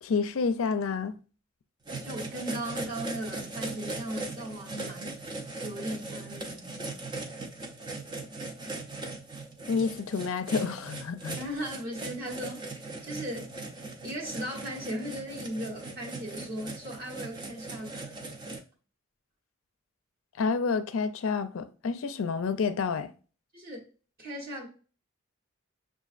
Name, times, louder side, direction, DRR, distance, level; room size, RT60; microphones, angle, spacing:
voice 1, 0.0-1.2 9.7-11.4 20.4-23.1, left 5 dB, 75° left, 0.4 m, -29 dB
sound 1, 1.9-18.6, right 2 dB, 20° right, 0.5 m, -39 dB
voice 2, 2.0-5.2 5.6-7.0 11.4-13.5 14.0-18.1 23.5-23.8 24.2-24.7, equal, 45° right, 1.1 m, -37 dB
6.8 x 2.4 x 2.4 m
head